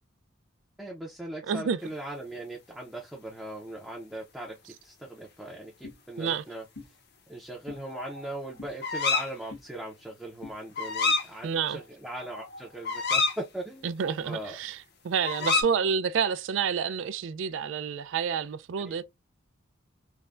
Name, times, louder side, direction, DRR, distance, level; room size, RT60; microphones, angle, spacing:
voice 1, 0.8-6.7 7.3-13.9 14.2-14.6 15.4-15.8 18.8-19.0, right 1 dB, ahead, 0.5 m, -40 dB
voice 2, 1.5-1.8 6.2-6.4 11.4-11.8 13.8-14.8 15.0-19.0, right 6 dB, 65° right, 0.3 m, -29 dB
sound 1, 5.8-6.0 6.7-6.9 7.7-7.8 8.6-8.7 9.5-9.6 10.4-10.6, left 3 dB, 75° left, 1.3 m, -43 dB
sound 2, 7.8-8.4 8.8-9.3 10.8-11.3 11.7-11.8 12.1-13.4 15.2-15.6, left 4 dB, 55° left, 0.7 m, -28 dB
3.3 x 2.1 x 2.4 m
head